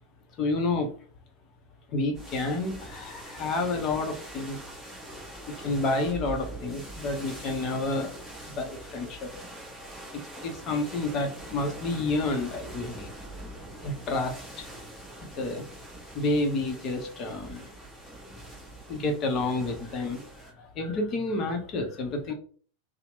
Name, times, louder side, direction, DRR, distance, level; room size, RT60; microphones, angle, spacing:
voice 1, 0.4-0.9 1.9-4.6 5.6-8.1 8.5-9.3 10.1-13.1 13.8-14.7 15.2-15.7 16.1-17.7 18.9-22.3, left 2 dB, 35° left, 4 dB, 0.7 m, -30 dB
sound 1, 2.1-20.5, right 1 dB, ahead, 1.1 m, -43 dB
2.9 x 2.0 x 2.9 m, 0.44 s
figure-of-eight pair, 90°, 0 cm